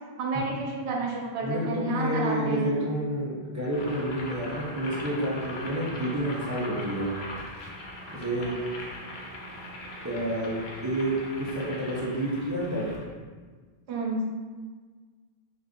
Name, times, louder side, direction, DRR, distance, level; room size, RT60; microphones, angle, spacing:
voice 1, 0.2-2.8 8.4-8.5 13.9-14.3, right 2 dB, 85° right, -2 dB, 0.8 m, -30 dB
voice 2, 1.4-7.1 8.1-8.5 10.0-12.9, right 1 dB, 25° right, -7 dB, 0.4 m, -29 dB
Boiling, 3.6-13.0, left 1 dB, 75° left, 0.9 m, -40 dB
2.5 x 2.4 x 3.6 m, 1.4 s
omnidirectional pair, 1.1 m